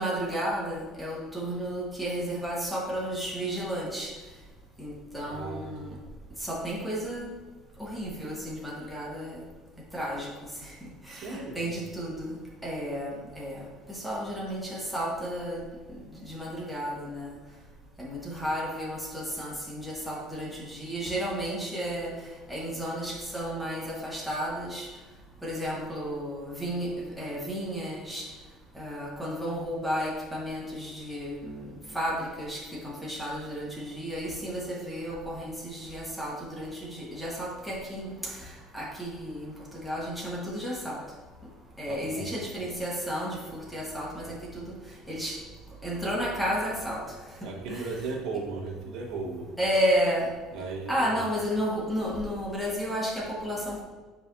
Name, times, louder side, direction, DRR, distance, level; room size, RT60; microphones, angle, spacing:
voice 1, 0.0-4.1 4.8-5.9 6.4-7.3 7.8-9.4 9.9-10.3 11.1-12.4 12.6-13.6 13.9-15.6 16.2-17.3 18.0-22.1 22.5-24.9 25.4-28.3 28.7-38.5 38.7-41.0 41.8-44.7 45.1-45.4 45.8-47.0 47.7-48.0 49.6-50.3 50.9-53.8, equal, ahead, -5 dB, 1.5 m, -32 dB
voice 2, 5.2-5.9 11.1-11.6 41.9-42.3 47.4-49.5 50.5-51.2, right 4 dB, 65° right, -1 dB, 1.5 m, -36 dB
11.0 x 5.0 x 2.7 m, 1.3 s
cardioid pair, 165°, 0 cm